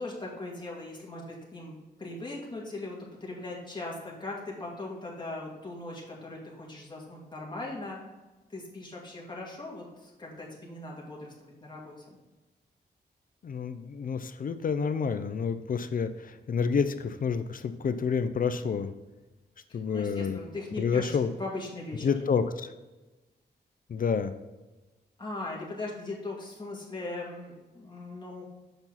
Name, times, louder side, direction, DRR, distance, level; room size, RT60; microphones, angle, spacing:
voice 1, 0.0-8.0 8.5-11.9 19.9-22.1 25.2-28.4, left 2 dB, 25° left, -4 dB, 2.2 m, -39 dB
voice 2, 13.4-18.9 19.7-20.4 20.8-21.3 22.0-22.7 23.9-24.3, left 6 dB, 50° left, 10 dB, 0.5 m, -29 dB
6.9 x 5.7 x 4.0 m, 1.1 s
wide cardioid pair, 125°, 18 cm